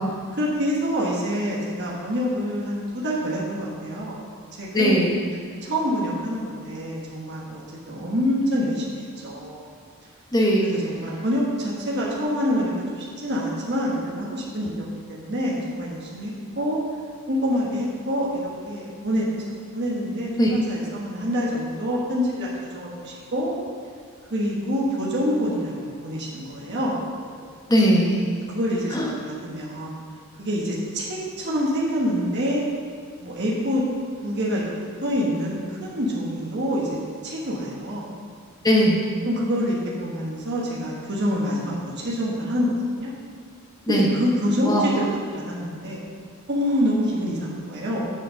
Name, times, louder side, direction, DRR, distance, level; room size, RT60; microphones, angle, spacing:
voice 1, 0.3-4.2 4.6-5.0 5.6-7.6 7.9-9.6 10.6-16.8 17.3-23.5 24.3-27.0 28.5-30.0 30.4-32.6 33.2-33.8 34.2-34.6 35.0-37.0 37.2-38.1 39.2-43.1 43.9-45.1 45.3-46.0 46.5-48.0, equal, 50° right, -5 dB, 1.4 m, -26 dB
voice 2, 4.7-5.2 10.3-10.7 20.4-20.5 27.7-28.3 28.9-29.2 38.6-39.0 43.9-44.1 44.7-45.0, equal, 15° left, -1 dB, 1.0 m, -20 dB
7.5 x 5.0 x 6.4 m, 2.1 s
head